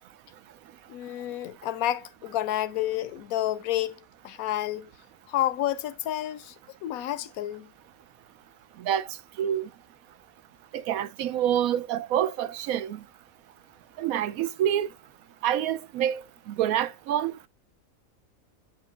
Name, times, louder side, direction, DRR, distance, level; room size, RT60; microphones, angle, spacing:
voice 1, 0.9-4.0 4.2-4.9 5.3-6.5 6.8-7.7, left 13 dB, 90° left, 1.1 m, -29 dB
voice 2, 9.4-9.7 10.7-13.0 14.0-14.9 15.4-17.3, right 10 dB, 90° right, 1.1 m, -27 dB
8.8 x 5.2 x 2.4 m
omnidirectional pair, 1.4 m